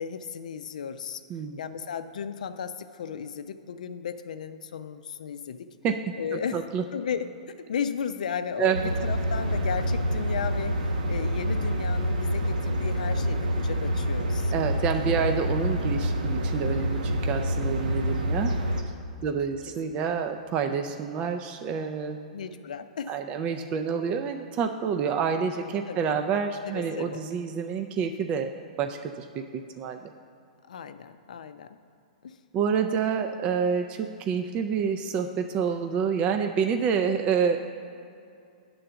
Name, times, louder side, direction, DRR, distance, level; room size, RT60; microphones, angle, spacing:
voice 1, 0.0-1.2 1.6-5.7 6.2-6.6 6.9-7.3 7.6-14.5 19.3-19.4 22.3-23.2 25.9-27.2 30.7-31.8 32.2-32.4, left 7 dB, 80° left, 10 dB, 0.5 m, -35 dB
voice 2, 6.3-6.8 8.6-8.9 14.5-18.5 18.8-18.9 19.2-22.2 23.1-28.5 28.8-29.4 29.8-30.1 32.5-37.6, right 6 dB, 30° right, 5 dB, 0.4 m, -28 dB
sound 1, 8.7-18.8, equal, 90° right, 0.8 m, -27 dB
9.0 x 3.8 x 6.9 m, 2.5 s
hypercardioid pair, 135°, 4 cm